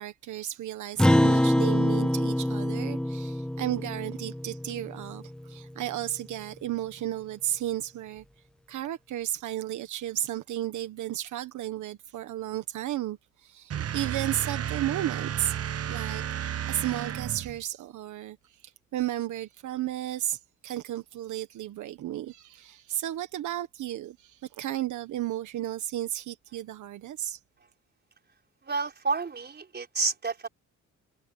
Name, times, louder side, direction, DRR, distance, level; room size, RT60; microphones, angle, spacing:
voice 1, 0.0-8.2 8.7-15.6 15.9-16.2 16.6-27.4, right 13 dB, 75° right, 1.5 m, -33 dB
Acoustic guitar, 1.0-5.7, left 1 dB, 5° left, 0.4 m, -25 dB
sound 1, 13.7-17.6, right 10 dB, 55° right, 1.2 m, -32 dB
voice 2, 28.6-30.5, right 4 dB, 35° right, 5.0 m, -30 dB
cardioid pair, 90°, 30 cm